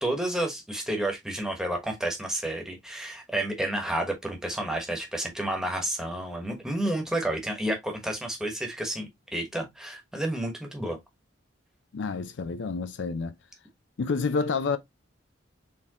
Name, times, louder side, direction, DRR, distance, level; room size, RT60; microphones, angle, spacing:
voice 1, 0.0-11.0, right 1 dB, 5° right, 1.1 m, -30 dB
voice 2, 11.9-13.3 14.0-14.8, left 4 dB, 60° left, 0.4 m, -28 dB
4.5 x 3.6 x 2.8 m
head